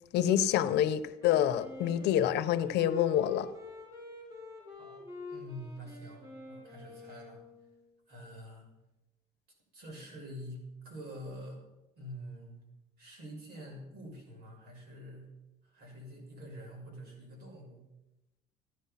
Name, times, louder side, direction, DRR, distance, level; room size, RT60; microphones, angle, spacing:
voice 1, 0.1-3.5, left 10 dB, 80° left, 12 dB, 0.9 m, -27 dB
Wind instrument woodwind instrument, 1.2-7.8, left 3 dB, 20° right, 4.9 m, -47 dB
voice 2, 4.8-7.4 8.1-8.7 9.7-11.6 12.0-12.6 13.0-15.3 15.6-17.8, equal, 70° right, 0 dB, 6.2 m, -46 dB
15.0 x 10.0 x 5.8 m, 0.97 s
cardioid pair, 110°, 17 cm